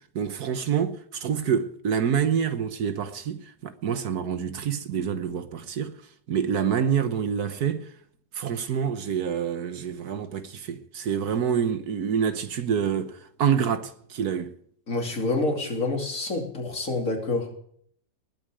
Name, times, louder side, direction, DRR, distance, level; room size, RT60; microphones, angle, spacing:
voice 1, 0.1-6.0 6.3-7.9 8.3-14.5, right 7 dB, 70° right, 1.5 m, -27 dB
voice 2, 14.9-17.5, left 2 dB, 50° left, 3.2 m, -27 dB
20.0 x 8.8 x 4.9 m
omnidirectional pair, 1.8 m